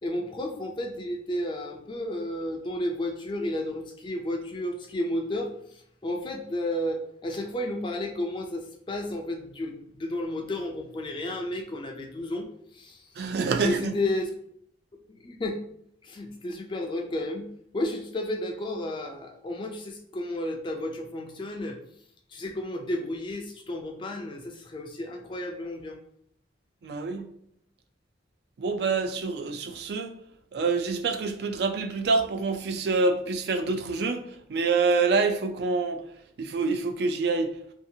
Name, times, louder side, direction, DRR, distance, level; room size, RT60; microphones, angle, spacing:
voice 1, 0.0-12.4 12.7-13.3 13.6-14.3 15.1-15.6 16.0-21.8 22.3-26.0, left 1 dB, 25° left, 0.3 m, -32 dB
voice 2, 13.2-13.9 26.8-27.3 28.6-30.1 30.5-36.0 36.4-37.6, right 4 dB, 60° right, 0.3 m, -26 dB
2.8 x 2.4 x 2.6 m
head